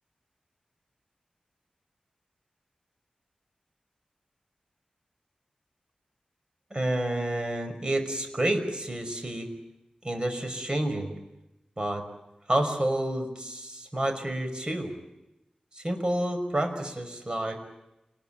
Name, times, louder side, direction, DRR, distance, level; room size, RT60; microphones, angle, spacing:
voice 1, 6.7-9.5 10.0-11.1 11.8-12.1 12.5-14.9 15.8-17.6, right 1 dB, 35° right, 6 dB, 5.6 m, -29 dB
28.0 x 20.5 x 9.0 m, 0.92 s
wide cardioid pair, 70°, 2 cm